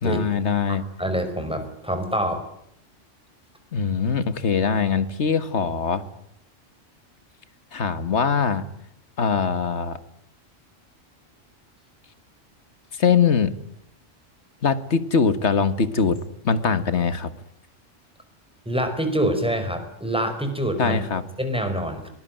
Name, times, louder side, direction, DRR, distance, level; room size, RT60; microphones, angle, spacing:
voice 1, 0.0-0.9 3.7-6.0 7.7-8.7 9.2-10.0 13.0-13.5 14.6-16.2 16.4-17.3 20.8-21.2, left 6 dB, 65° left, 13 dB, 1.9 m, -22 dB
voice 2, 1.0-2.4 18.6-21.0 21.4-22.1, equal, 5° right, 6 dB, 4.9 m, -25 dB
23.5 x 19.5 x 9.1 m, 0.73 s
omnidirectional pair, 1.3 m